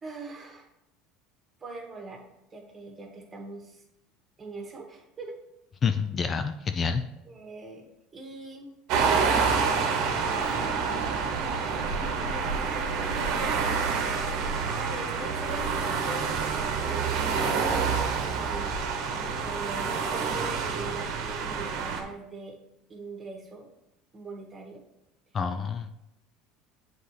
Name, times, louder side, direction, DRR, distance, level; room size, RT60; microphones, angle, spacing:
voice 1, 0.0-0.7 1.6-2.2 2.5-3.8 4.4-5.3 7.2-7.8 8.1-8.7 10.4-13.3 14.3-22.6 22.9-23.7 24.1-24.8, right 3 dB, 25° right, 2 dB, 1.6 m, -42 dB
voice 2, 5.8-7.0 25.3-25.9, left 6 dB, 35° left, 8 dB, 0.4 m, -28 dB
sound 1, 8.9-22.0, right 5 dB, 65° right, 1.0 m, -28 dB
7.5 x 4.0 x 3.3 m, 0.84 s
supercardioid pair, 90°, 0 cm